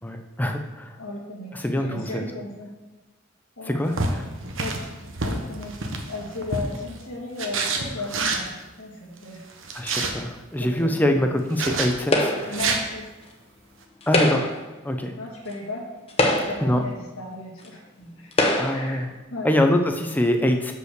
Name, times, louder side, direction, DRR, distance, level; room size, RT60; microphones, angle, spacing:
voice 1, 0.0-1.0 1.5-2.2 3.6-4.2 9.7-12.6 14.1-14.5 14.8-15.1 16.6-16.8 18.6-19.1 19.4-20.7, left 1 dB, 10° left, 4 dB, 0.6 m, -24 dB
voice 2, 1.0-2.7 3.6-3.9 4.6-4.9 5.2-8.5 8.8-9.4 10.6-11.2 12.5-13.1 15.1-15.9 16.3-18.3 18.7-19.5, left 2 dB, 90° left, -3 dB, 1.8 m, -35 dB
sound 1, 3.9-6.9 7.4-8.5 9.5-10.1 11.5-11.9 12.4-12.8, right 3 dB, 70° right, 1.0 m, -27 dB
sound 2, 12.1-12.6 14.0-14.7 15.5-15.6 16.1-16.8 17.6-17.7 18.3-18.9, left 1 dB, 30° left, 0.9 m, -23 dB
6.2 x 5.5 x 6.5 m, 1.1 s
head